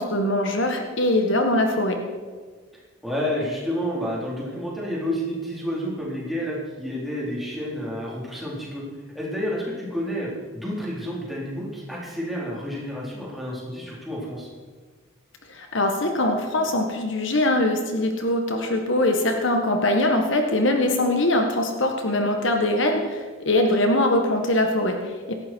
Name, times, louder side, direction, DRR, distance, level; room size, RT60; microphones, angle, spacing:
voice 1, 0.0-2.0 15.5-25.3, left 1 dB, 60° left, 4 dB, 1.7 m, -22 dB
voice 2, 2.7-8.8 9.1-14.5, equal, ahead, -5 dB, 4.1 m, -30 dB
17.5 x 14.5 x 4.7 m, 1.5 s
head